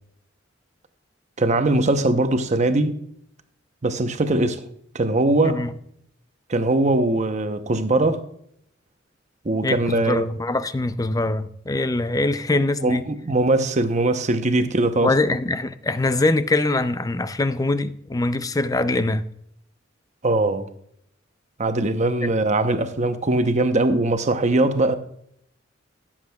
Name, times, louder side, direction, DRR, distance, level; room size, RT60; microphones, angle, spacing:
voice 1, 1.4-3.0 3.8-4.6 4.9-5.6 6.5-8.2 9.4-10.3 12.8-15.1 20.2-20.6 21.6-25.0, right 2 dB, 40° right, 0.8 m, -21 dB
voice 2, 9.6-13.1 15.0-19.3 22.2-22.3, left 2 dB, 20° left, 0.5 m, -23 dB
16.5 x 7.4 x 2.3 m
head